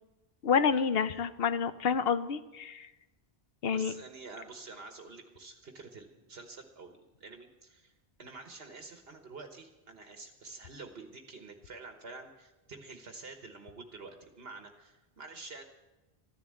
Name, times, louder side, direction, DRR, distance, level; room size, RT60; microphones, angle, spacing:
voice 1, 0.4-2.9 3.6-3.9, left 6 dB, 70° left, 12 dB, 1.0 m, -28 dB
voice 2, 3.7-7.9 8.2-15.6, right 3 dB, 75° right, 4 dB, 1.5 m, -48 dB
14.0 x 11.0 x 7.7 m, 1.1 s
omnidirectional pair, 1.0 m